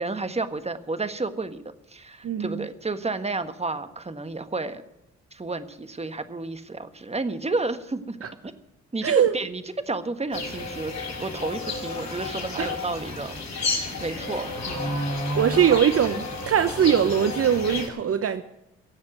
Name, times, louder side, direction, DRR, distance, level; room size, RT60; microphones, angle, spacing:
voice 1, 0.0-1.6 1.9-4.8 5.3-8.2 8.4-8.5 8.9-14.9, right 3 dB, 20° right, 10 dB, 1.5 m, -31 dB
voice 2, 2.2-2.7 8.2-8.3 9.0-9.3 12.6-12.7 15.3-18.4, right 8 dB, 50° right, 11 dB, 0.8 m, -21 dB
sound 1, 10.3-17.9, left 2 dB, 60° left, 5.6 m, -31 dB
17.0 x 7.4 x 9.5 m, 0.91 s
hypercardioid pair, 50°, 31 cm